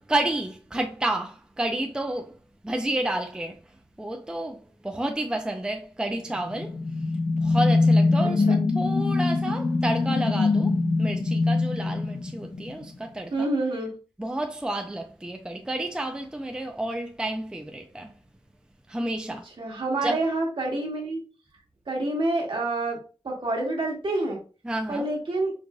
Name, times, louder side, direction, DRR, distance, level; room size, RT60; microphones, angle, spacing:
voice 1, 0.0-2.3 2.6-3.6 4.0-6.8 7.4-10.7 11.0-13.5 14.2-18.1 18.9-19.4 20.0-20.2 24.6-25.1, right 1 dB, 10° right, 0.4 m, -30 dB
sound 1, 6.4-12.9, left 3 dB, 50° left, 0.7 m, -23 dB
voice 2, 8.2-8.6 13.3-14.0 19.6-21.2 21.9-24.4 24.9-25.5, right 2 dB, 55° right, 1.3 m, -28 dB
4.6 x 2.5 x 2.3 m
wide cardioid pair, 100°, 10 cm